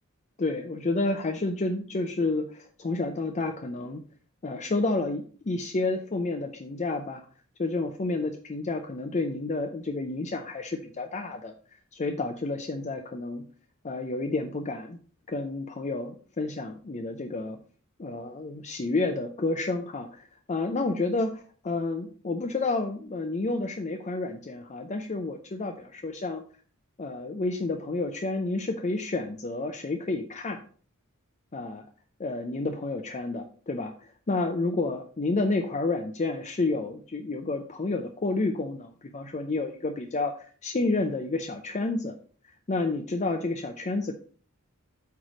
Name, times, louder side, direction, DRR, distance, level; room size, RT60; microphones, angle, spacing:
voice 1, 0.4-4.0 4.4-7.3 7.6-11.5 11.9-13.5 13.8-15.0 15.3-17.6 18.0-26.4 27.0-30.6 31.5-31.9 32.2-42.1 42.7-44.1, left 3 dB, 35° left, 5 dB, 0.6 m, -30 dB
8.2 x 3.2 x 5.0 m, 0.42 s
head